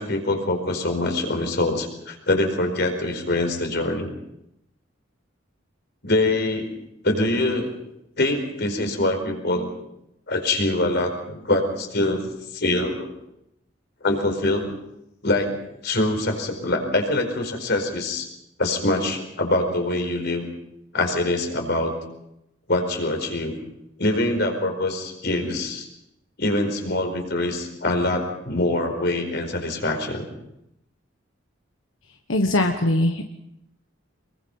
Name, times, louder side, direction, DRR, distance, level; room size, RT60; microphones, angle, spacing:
voice 1, 0.0-4.1 6.0-6.7 7.0-7.7 8.2-9.7 10.3-12.2 12.5-13.1 14.0-14.6 15.2-15.5 15.8-18.3 18.6-20.4 20.9-21.9 22.7-23.5 24.0-25.9 26.4-30.3, left 2 dB, 60° left, 4 dB, 4.8 m, -24 dB
voice 2, 32.3-33.2, left 1 dB, 90° left, 5 dB, 1.4 m, -21 dB
25.0 x 23.0 x 5.6 m, 0.84 s
head